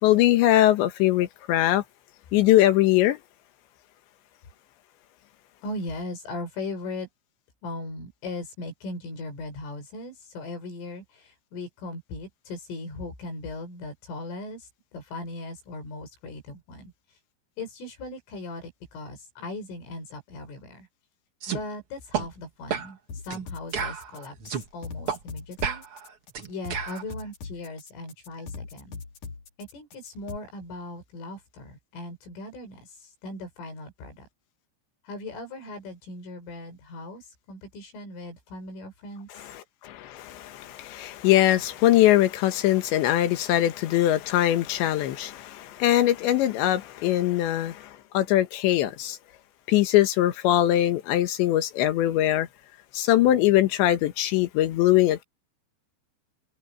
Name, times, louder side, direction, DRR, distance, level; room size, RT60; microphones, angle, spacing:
voice 1, 0.0-1.8 2.3-3.2 39.8-49.2 49.7-52.5 52.9-55.2, left 14 dB, 70° left, 3.5 m, -22 dB
voice 2, 5.6-7.1 7.6-16.9 17.6-20.9 21.5-23.0 23.2-25.8 26.5-29.0 29.6-34.3 35.0-39.4, left 2 dB, 90° left, 10.0 m, -38 dB
sound 1, 21.4-21.6 22.1-22.3 22.7-22.9 23.3-23.4 23.7-24.7 25.1-25.2 25.6-27.0, right 7 dB, 65° right, 1.3 m, -31 dB
sound 2, 23.1-30.4, left 4 dB, 45° left, 4.3 m, -40 dB
omnidirectional pair, 5.6 m